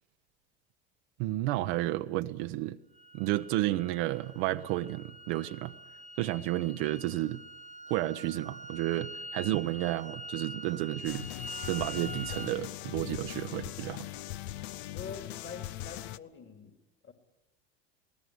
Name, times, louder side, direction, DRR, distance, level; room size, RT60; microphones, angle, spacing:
voice 1, 1.2-2.8 3.1-5.7 6.2-7.4 7.9-11.3 11.6-14.1, right 16 dB, 70° right, 0.9 m, -31 dB
sound 1, 2.9-12.6, right 1 dB, 25° left, 1.7 m, -45 dB
sound 2, 11.0-16.2, left 14 dB, 75° left, 0.7 m, -40 dB
voice 2, 14.9-16.7 17.0-17.1, left 6 dB, 40° left, 2.7 m, -45 dB
20.0 x 18.0 x 9.6 m
hypercardioid pair, 85°, 32 cm